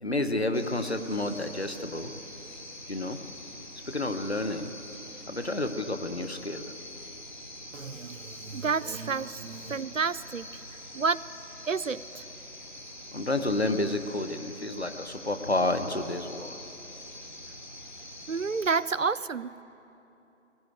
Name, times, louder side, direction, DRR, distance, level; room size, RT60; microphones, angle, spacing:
voice 1, 0.0-2.1 2.9-3.2 3.8-4.7 5.3-6.7 13.1-16.6, left 2 dB, 55° left, 8 dB, 1.3 m, -30 dB
sound 1, 0.5-18.8, left 1 dB, 40° left, 2.7 m, -45 dB
voice 2, 7.7-10.5 10.9-11.2 11.7-12.3 18.3-19.6, right 5 dB, 80° right, 17 dB, 0.6 m, -30 dB
20.0 x 16.0 x 8.3 m, 2.9 s
figure-of-eight pair, 175°, 39 cm